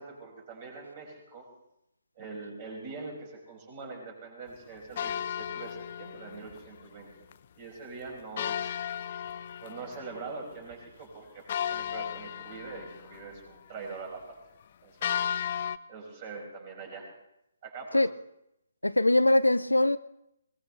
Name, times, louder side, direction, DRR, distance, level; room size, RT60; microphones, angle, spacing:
voice 1, 0.0-1.5 2.2-8.8 9.6-14.4 14.8-15.2 15.9-17.1 17.6-18.0, right 4 dB, 30° right, 1 dB, 5.8 m, -43 dB
sound 1, 5.0-6.6 7.0-7.1 7.3-7.4 8.4-10.3 10.7-10.8 11.5-13.3 15.0-15.8, left 9 dB, 40° left, 0.6 m, -34 dB
voice 2, 18.8-20.0, left 1 dB, 80° left, 15 dB, 0.6 m, -22 dB
22.0 x 20.0 x 3.3 m, 0.80 s
figure-of-eight pair, 135°, 0 cm